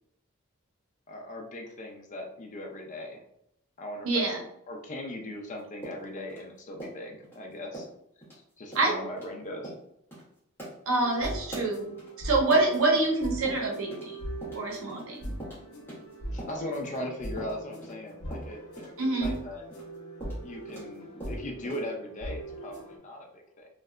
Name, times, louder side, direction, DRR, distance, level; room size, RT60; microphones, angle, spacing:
voice 1, 1.1-3.2 3.8-4.2 4.7-7.9 8.3-9.7 16.3-18.9 19.2-19.6 20.4-23.7, left 1 dB, 35° left, 1 dB, 0.4 m, -39 dB
voice 2, 4.0-4.4 8.7-8.9 10.9-11.9 12.2-14.2 14.5-15.2 19.0-19.3, right 2 dB, 65° right, -1 dB, 0.7 m, -26 dB
sound 1, 5.8-7.4 7.7-8.4 8.7-8.9 9.2-9.3 9.6-9.8 10.1-10.2 10.6-13.1 13.4-14.1 14.4-17.0 17.4-20.9 21.2-21.9, right 1 dB, 10° left, 1.0 m, -43 dB
sound 2, 10.9-23.0, right 1 dB, 75° left, 0.8 m, -40 dB
2.7 x 2.1 x 2.4 m, 0.75 s
head